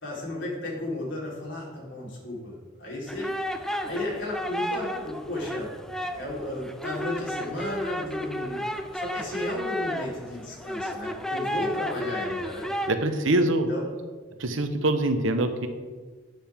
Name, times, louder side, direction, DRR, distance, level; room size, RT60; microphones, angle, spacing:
voice 1, 0.0-3.3 3.8-5.8 6.1-8.6 8.9-12.7 13.7-14.0, left 1 dB, 70° left, -4 dB, 3.8 m, -34 dB
sound 1, 3.1-12.9, equal, 5° left, 0.5 m, -33 dB
voice 2, 12.9-13.7 14.4-15.7, right 1 dB, 80° right, 7 dB, 1.0 m, -24 dB
12.0 x 9.0 x 3.7 m, 1.4 s
head